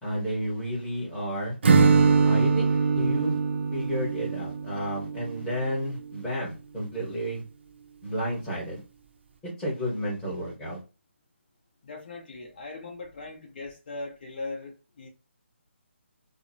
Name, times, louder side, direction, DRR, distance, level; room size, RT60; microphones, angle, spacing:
voice 1, 0.0-1.6 2.2-3.4 3.7-7.4 8.0-8.8 9.4-10.8, equal, 10° left, 1.0 m, -31 dB
Acoustic guitar / Strum, 1.6-5.5, right 5 dB, 60° right, 0.6 m, -22 dB
voice 2, 11.8-15.1, left 3 dB, 45° left, 0.8 m, -39 dB
2.7 x 2.0 x 2.6 m
hypercardioid pair, 160°, 7 cm